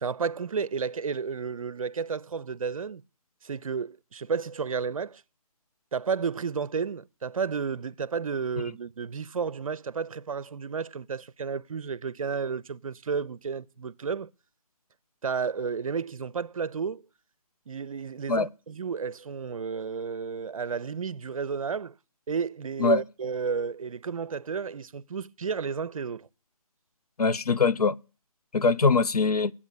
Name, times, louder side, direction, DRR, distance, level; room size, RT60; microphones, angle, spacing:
voice 1, 0.0-3.0 3.4-5.2 5.9-14.3 15.2-17.0 17.7-21.9 22.3-26.3, right 5 dB, 65° right, 0.6 m, -32 dB
voice 2, 27.2-27.9 28.5-29.5, left 4 dB, 80° left, 0.7 m, -22 dB
11.0 x 8.7 x 8.5 m
figure-of-eight pair, 150°, 19 cm